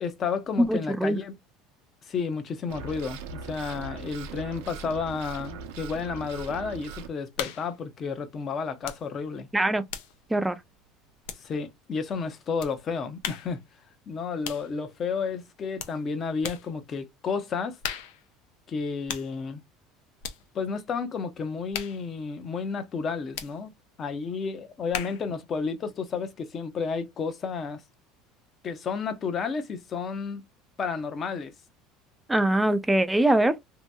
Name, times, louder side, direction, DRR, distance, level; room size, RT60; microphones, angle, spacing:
voice 1, 0.0-1.3 2.1-3.2 3.4-9.5 11.3-13.6 14.1-17.8 18.7-19.6 20.5-23.7 24.0-27.8 28.6-30.4 30.8-31.5, left 5 dB, 35° left, 0.7 m, -31 dB
voice 2, 0.6-1.2 9.5-9.8 10.3-10.6 32.3-33.6, right 1 dB, 5° right, 0.3 m, -22 dB
sound 1, 2.7-7.1, right 4 dB, 90° right, 0.6 m, -40 dB
sound 2, 7.3-7.8 8.8-9.1 9.4-11.8 12.6-12.8 13.2-13.6 14.4-14.7 15.8-16.0 16.4-16.7 17.8-18.3 19.1-19.4 20.2-20.4 21.7-22.1 23.3-23.6 24.9-25.3, left 9 dB, 80° left, 0.6 m, -37 dB
2.8 x 2.6 x 2.2 m
cardioid pair, 130°, 0 cm